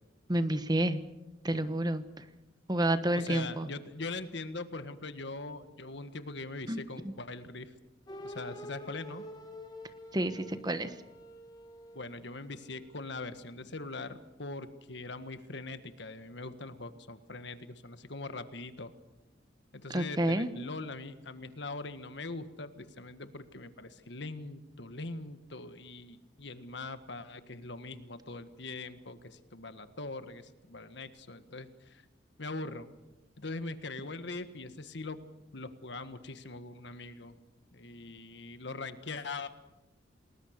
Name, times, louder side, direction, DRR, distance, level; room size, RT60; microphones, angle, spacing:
voice 1, 0.3-1.0 1.4-2.0 2.7-3.7 6.7-7.1 10.1-10.9 19.9-20.5, right 1 dB, 20° right, 11 dB, 1.2 m, -29 dB
voice 2, 3.1-7.7 8.2-9.2 11.9-18.9 19.7-32.0 32.4-32.9 33.4-35.2 35.5-37.4 37.7-39.5, left 3 dB, 65° left, 10 dB, 1.6 m, -42 dB
sound 1, 8.1-13.0, left 1 dB, 20° left, 3.5 m, -48 dB
28.5 x 20.0 x 6.7 m, 0.98 s
head